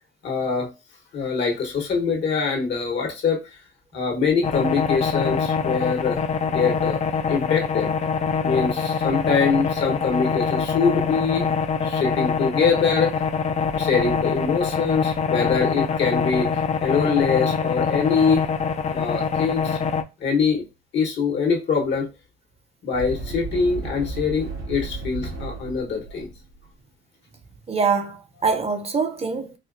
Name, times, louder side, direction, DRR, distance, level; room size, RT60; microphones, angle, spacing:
voice 1, 0.2-0.7 1.1-3.4 3.9-6.2 6.5-7.0 7.3-7.9 8.4-11.5 11.8-13.1 13.7-16.5 16.8-18.4 18.9-19.8 20.2-20.6 20.9-22.1 22.8-26.3, left 5 dB, 65° left, 1.2 m, -23 dB
sound 1, 4.4-20.0, left 6 dB, 35° left, 0.4 m, -24 dB
sound 2, 22.9-26.6, right 2 dB, 80° right, 1.9 m, -33 dB
voice 2, 27.7-29.6, right 5 dB, 30° right, 0.6 m, -24 dB
4.2 x 2.2 x 2.5 m
cardioid pair, 90°, 20 cm